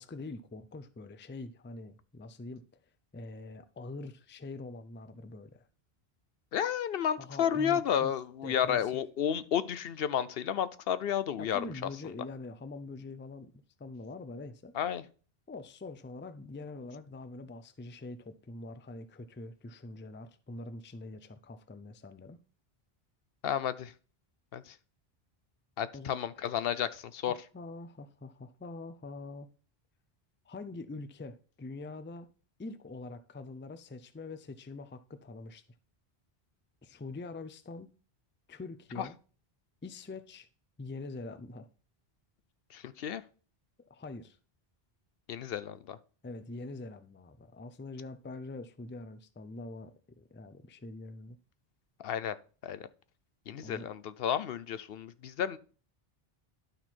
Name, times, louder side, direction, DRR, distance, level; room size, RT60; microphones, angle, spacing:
voice 1, 0.0-2.6 3.1-5.7 7.2-8.1 8.4-8.9 11.4-13.5 13.8-14.7 15.5-22.4 25.9-26.6 27.3-29.5 30.5-32.3 32.6-35.6 36.8-37.9 38.5-39.2 39.8-40.5 40.8-41.7 43.9-44.4 46.2-51.4 53.6-53.9, left 3 dB, 15° left, 0.4 m, -44 dB
voice 2, 6.5-11.6 14.7-15.0 23.4-23.9 24.5-24.8 25.8-27.3 39.0-39.1 42.7-43.2 45.3-46.0 52.0-52.3 52.6-52.9 53.5-55.6, left 9 dB, 70° left, 0.8 m, -32 dB
11.5 x 4.3 x 4.5 m
omnidirectional pair, 1.0 m